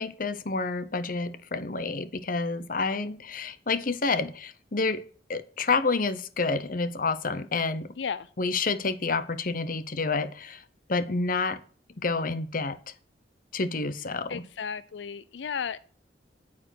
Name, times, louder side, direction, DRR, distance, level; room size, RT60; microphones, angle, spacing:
voice 1, 0.0-5.0 5.3-7.9 8.4-10.6 10.9-11.6 12.0-12.8 13.5-14.4, left 3 dB, 50° left, 0.9 m, -29 dB
voice 2, 8.0-8.3 14.3-15.8, left 6 dB, 90° left, 0.5 m, -34 dB
9.1 x 8.8 x 6.3 m
head